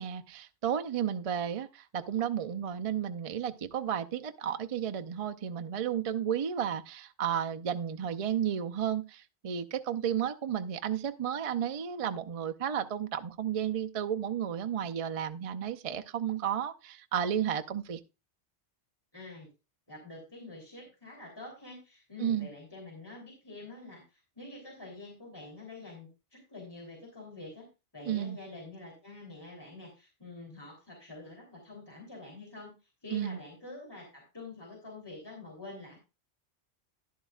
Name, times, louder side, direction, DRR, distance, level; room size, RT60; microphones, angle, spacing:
voice 1, 0.0-18.0 22.2-22.5 28.1-28.4 33.1-33.4, right 9 dB, 45° right, 0.5 m, -33 dB
voice 2, 19.1-19.5 19.9-27.7 27.9-32.7 33.0-36.0, left 3 dB, 20° left, 3.3 m, -47 dB
11.0 x 11.0 x 2.4 m
omnidirectional pair, 1.2 m